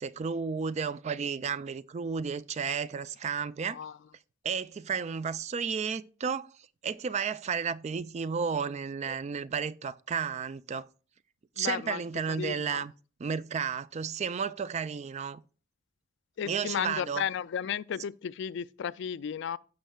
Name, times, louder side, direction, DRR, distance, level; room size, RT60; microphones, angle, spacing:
voice 1, 0.0-3.8 4.4-6.6 6.8-10.9 11.6-12.9 13.2-15.4 16.5-17.2, right 6 dB, 35° right, 0.3 m, -32 dB
voice 2, 11.6-12.0 12.3-12.8 16.4-19.6, left 8 dB, 60° left, 0.3 m, -34 dB
16.0 x 5.6 x 2.3 m
head